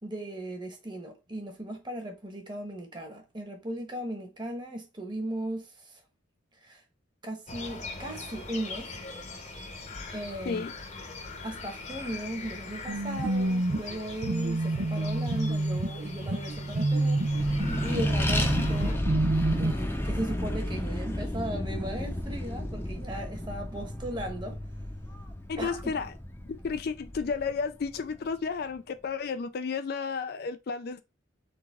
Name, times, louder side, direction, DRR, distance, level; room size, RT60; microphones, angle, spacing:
voice 1, 0.0-6.0 6.6-6.8 7.2-8.9 10.1-10.6 11.4-17.2 17.8-19.0 19.6-24.6 25.6-25.9, right 1 dB, 25° right, 1.2 m, -37 dB
sound 1, 7.5-18.9, left 3 dB, 40° left, 0.9 m, -41 dB
sound 2, 12.9-19.7, right 2 dB, 90° right, 0.8 m, -28 dB
Accelerating revving vroom, 17.2-28.1, left 1 dB, 10° left, 0.7 m, -32 dB
voice 2, 25.5-26.1 26.6-31.0, left 5 dB, 55° left, 0.4 m, -32 dB
4.0 x 3.5 x 3.5 m
head